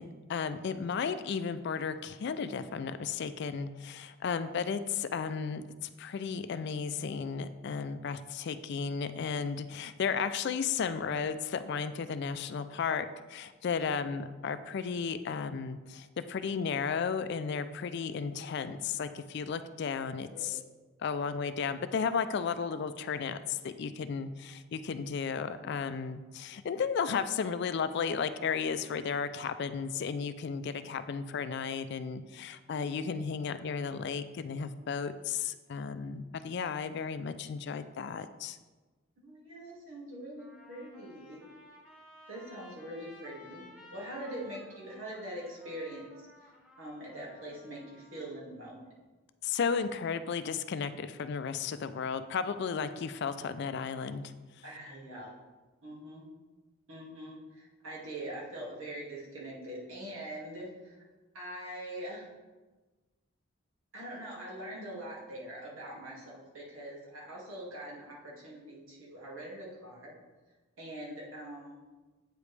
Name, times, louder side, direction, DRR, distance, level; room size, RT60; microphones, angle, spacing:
voice 1, 0.0-20.6 21.0-38.6 49.4-54.2, left 6 dB, 55° left, 12 dB, 0.3 m, -34 dB
voice 2, 19.9-20.6 39.2-41.4 42.3-43.6 43.9-46.1 46.4-46.5 46.8-48.9 54.6-55.3 55.8-56.2 56.9-61.0 61.3-62.3 63.9-70.1 70.8-71.8, right 1 dB, 80° right, -5 dB, 2.2 m, -43 dB
Trumpet, 39.7-39.8 40.4-48.3, left 1 dB, 5° right, 1.4 m, -55 dB
8.2 x 5.0 x 3.3 m, 1.2 s
head